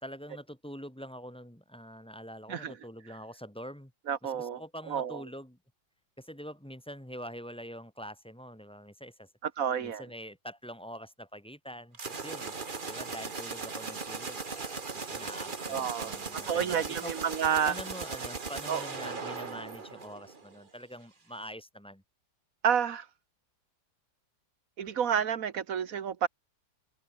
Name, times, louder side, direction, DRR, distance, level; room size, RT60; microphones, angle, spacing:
voice 1, 0.0-3.9 4.2-5.6 6.2-9.3 9.8-12.5 12.8-17.1 17.6-22.0, equal, 5° left, 2.2 m, -45 dB
voice 2, 4.1-4.6 4.9-5.2 9.6-10.0 15.7-16.2 16.5-17.7 18.7-18.8 22.6-23.1 24.8-26.3, right 8 dB, 60° right, 1.6 m, -29 dB
sound 1, 11.9-20.6, right 4 dB, 30° right, 1.6 m, -38 dB
open air
omnidirectional pair, 1.7 m